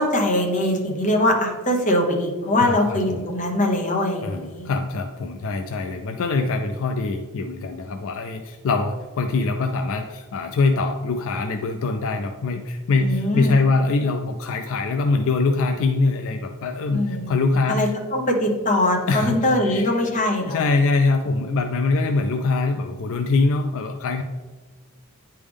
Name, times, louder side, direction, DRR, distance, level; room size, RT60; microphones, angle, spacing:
voice 1, 0.0-4.7 13.0-13.5 16.9-17.4 17.7-20.7, left 1 dB, 35° left, 1 dB, 1.0 m, -22 dB
voice 2, 2.6-3.2 4.2-17.9 19.1-19.4 19.6-19.9 20.4-24.2, left 3 dB, 65° left, 6 dB, 0.4 m, -23 dB
9.4 x 3.4 x 3.5 m, 1.3 s
head